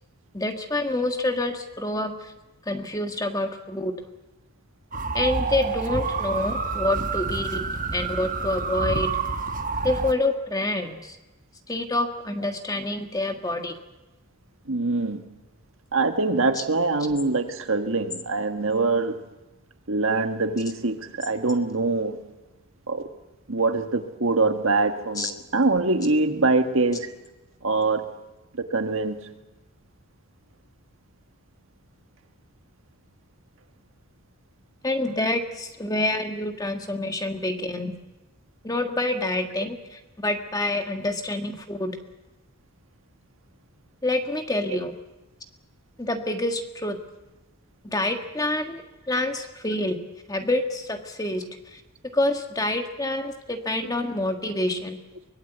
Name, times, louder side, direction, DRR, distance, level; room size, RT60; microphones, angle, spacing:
voice 1, 0.3-2.3 2.7-3.9 5.1-7.6 7.9-9.1 9.8-11.2 11.7-13.7 16.6-16.7 25.2-25.3 34.8-37.9 38.6-42.0 44.0-44.9 46.0-47.0 47.8-50.0 50.3-51.8 52.1-55.0, left 1 dB, 15° left, 1.6 m, -27 dB
sound 1, 4.9-10.1, right 4 dB, 40° right, 1.1 m, -28 dB
voice 2, 14.7-15.2 15.9-19.2 19.9-22.2 22.9-23.1 23.5-27.1 27.6-28.1 28.6-29.3, right 3 dB, 70° right, 1.7 m, -24 dB
24.0 x 20.5 x 8.1 m
head